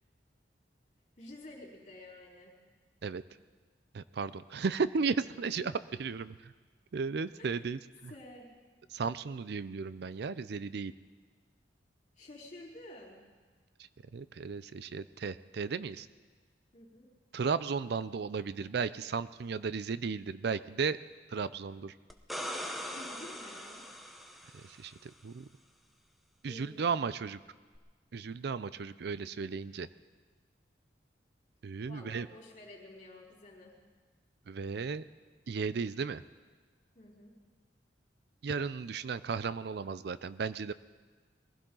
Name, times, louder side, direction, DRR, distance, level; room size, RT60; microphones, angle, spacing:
voice 1, 1.2-2.5 5.4-5.7 7.4-7.6 8.1-8.5 12.2-13.2 16.7-17.1 22.9-23.8 26.5-26.8 31.8-33.8 36.9-37.3, left 1 dB, 45° left, -3 dB, 4.0 m, -50 dB
voice 2, 3.9-5.7 6.0-6.5 6.9-8.1 8.9-10.9 14.1-16.1 17.3-21.0 21.3-21.9 24.5-25.5 26.4-27.4 28.1-29.9 31.6-32.3 34.5-35.0 35.5-36.2 38.4-40.7, right 5 dB, 65° right, 15 dB, 0.5 m, -35 dB
sound 1, 22.1-24.9 27.7-27.8, equal, ahead, 0.9 m, -41 dB
22.0 x 16.0 x 3.8 m, 1.4 s
head